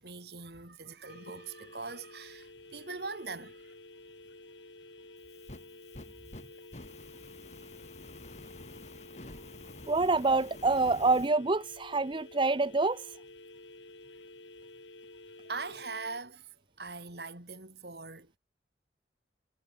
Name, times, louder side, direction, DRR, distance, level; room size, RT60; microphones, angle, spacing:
voice 1, 0.0-3.6 15.5-16.5 16.8-18.4, right 3 dB, 60° right, 5.5 m, -41 dB
sound 1, 1.1-16.2, left 2 dB, 75° left, 6.9 m, -51 dB
Fire, 5.2-11.3, left 2 dB, 40° left, 2.9 m, -49 dB
voice 2, 9.9-13.1, right 3 dB, 30° right, 0.6 m, -27 dB
head